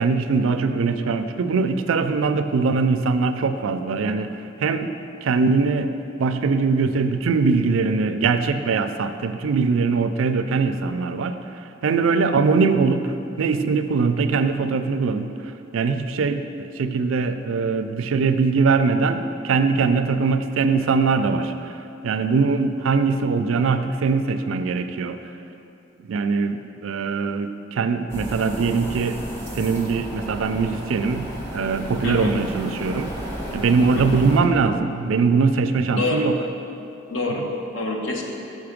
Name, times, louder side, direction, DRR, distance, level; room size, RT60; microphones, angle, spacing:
voice 1, 0.0-4.3 4.6-4.9 5.2-5.9 6.2-15.3 15.7-21.8 22.0-25.2 26.0-29.2 29.5-33.1 33.5-36.4, right 4 dB, 85° right, 9 dB, 0.4 m, -22 dB
sound 1, 28.1-34.4, equal, 10° left, 1.0 m, -33 dB
voice 2, 32.0-32.3 33.9-34.2 35.9-36.2 37.1-37.4 37.7-38.2, left 2 dB, 70° left, 1 dB, 0.9 m, -26 dB
6.3 x 5.9 x 5.0 m, 2.7 s
head